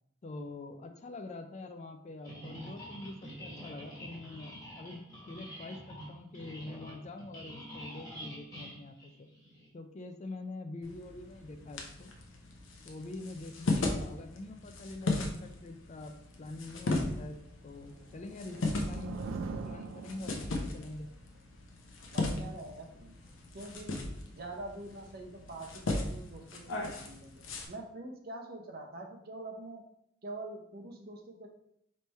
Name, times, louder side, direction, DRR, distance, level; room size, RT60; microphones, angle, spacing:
voice 1, 0.2-9.3 9.7-12.1 12.8-18.6 18.8-21.1, left 2 dB, 35° left, 6 dB, 0.4 m, -45 dB
sound 1, 2.2-9.7, equal, 20° left, 1.2 m, -47 dB
sound 2, 10.8-27.7, left 2 dB, 70° left, 0.7 m, -37 dB
sound 3, 18.0-20.8, right 4 dB, 75° right, 0.3 m, -42 dB
voice 2, 22.1-23.1 23.5-29.8 30.2-31.5, right 2 dB, 50° right, 2 dB, 0.7 m, -45 dB
3.3 x 3.2 x 4.2 m, 0.73 s
head